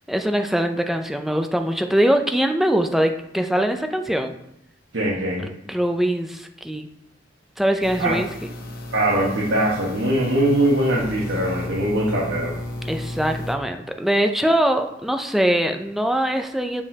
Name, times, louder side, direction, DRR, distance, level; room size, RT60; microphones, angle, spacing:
voice 1, 0.1-4.3 5.7-6.9 7.6-8.3 12.8-16.8, right 1 dB, ahead, 5 dB, 0.4 m, -22 dB
voice 2, 4.9-5.4 8.0-8.2 8.9-12.6, right 1 dB, 75° right, -5 dB, 1.3 m, -21 dB
sound 1, 7.8-13.6, left 1 dB, 55° left, 0.8 m, -33 dB
7.2 x 5.2 x 2.8 m, 0.79 s
head